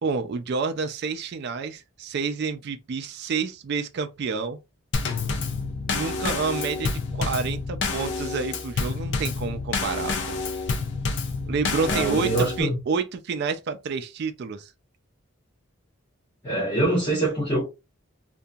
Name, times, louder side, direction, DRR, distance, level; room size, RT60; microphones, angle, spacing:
voice 1, 0.0-4.6 5.9-10.4 11.5-14.7, right 5 dB, 50° right, 0.3 m, -29 dB
Drum kit / Snare drum / Bass drum, 4.9-12.6, left 4 dB, 55° left, 0.6 m, -28 dB
voice 2, 11.9-12.8 16.4-17.7, right 1 dB, 25° left, 1.1 m, -24 dB
2.8 x 2.5 x 2.2 m
head